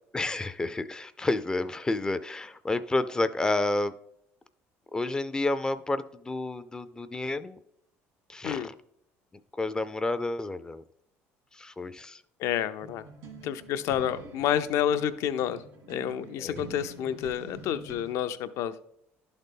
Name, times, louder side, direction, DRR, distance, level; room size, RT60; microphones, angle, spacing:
voice 1, 0.1-3.9 4.9-7.6 8.3-8.7 9.6-10.8 11.5-12.2 16.4-16.6, left 2 dB, 15° left, 12 dB, 0.4 m, -30 dB
voice 2, 12.4-13.0 13.4-15.6 15.9-18.7, left 10 dB, 70° left, 12 dB, 0.5 m, -29 dB
sound 1, 12.8-18.1, right 4 dB, 80° right, 2.0 m, -46 dB
11.5 x 4.0 x 3.6 m, 0.73 s
cardioid pair, 125°, 5 cm